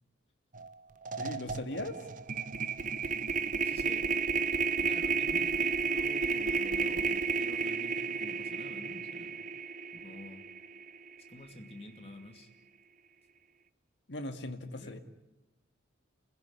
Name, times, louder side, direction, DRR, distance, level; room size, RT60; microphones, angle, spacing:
sound 1, 0.5-0.7 1.0-11.3, right 5 dB, 40° right, 0.8 m, -32 dB
voice 1, 1.2-2.0 14.1-15.0, left 1 dB, 60° left, 7 dB, 2.1 m, -39 dB
voice 2, 3.6-4.1 4.5-9.4 9.9-10.5 11.3-12.5 14.8-15.0, left 1 dB, 30° left, 5 dB, 2.6 m, -49 dB
29.5 x 16.0 x 9.8 m, 1.0 s
head